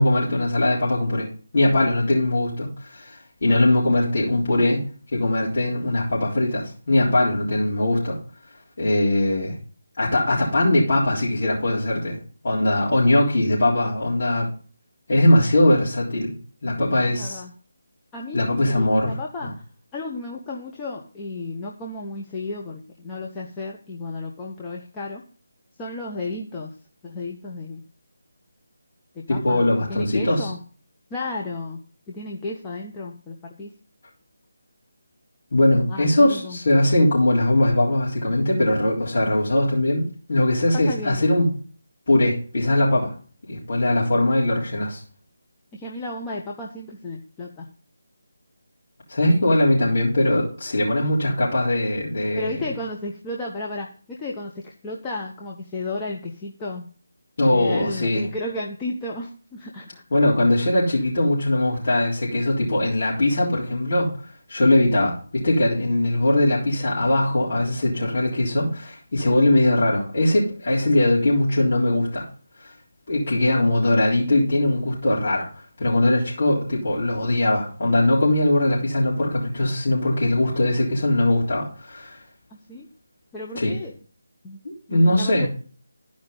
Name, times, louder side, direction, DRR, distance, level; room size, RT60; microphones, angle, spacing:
voice 1, 0.0-4.8 5.1-8.2 8.8-9.5 10.0-12.2 12.4-14.5 15.1-16.4 16.6-17.4 18.3-19.5 29.3-30.5 35.5-41.5 42.1-43.1 43.5-45.0 49.1-52.6 57.4-58.3 60.1-64.1 64.5-72.3 73.1-75.5 75.8-82.2 83.6-83.7 84.6-85.5, left 1 dB, 45° left, -7 dB, 3.7 m, -20 dB
voice 2, 17.1-17.5 18.1-19.6 19.9-25.2 25.8-26.7 27.0-27.8 29.1-30.6 31.1-31.8 32.1-33.7 35.9-36.6 40.7-41.3 45.7-47.7 52.3-56.9 57.5-60.0 82.7-82.9 83.3-83.9 84.4-84.6 84.9-85.5, left 2 dB, 15° left, -2 dB, 0.8 m, -33 dB
13.5 x 5.1 x 5.5 m, 0.40 s
figure-of-eight pair, 155°, 0 cm